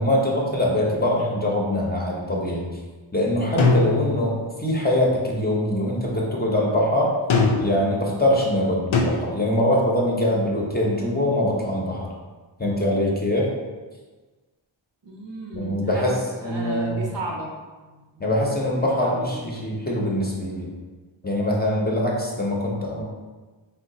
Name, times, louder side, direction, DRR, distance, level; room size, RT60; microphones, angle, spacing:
voice 1, 0.0-2.8 3.1-7.1 7.6-12.1 12.6-13.5 15.5-17.1 18.2-20.7 21.2-23.0, left 1 dB, 20° left, -3 dB, 0.6 m, -23 dB
sound 1, 3.6-4.5 7.3-7.9 8.9-9.0, left 4 dB, 90° left, 0.5 m, -20 dB
voice 2, 15.0-16.0 16.4-17.5 17.9-18.3 18.7-19.7, right 2 dB, 65° right, -1 dB, 0.7 m, -35 dB
2.9 x 2.2 x 3.8 m, 1.3 s
wide cardioid pair, 60°, 46 cm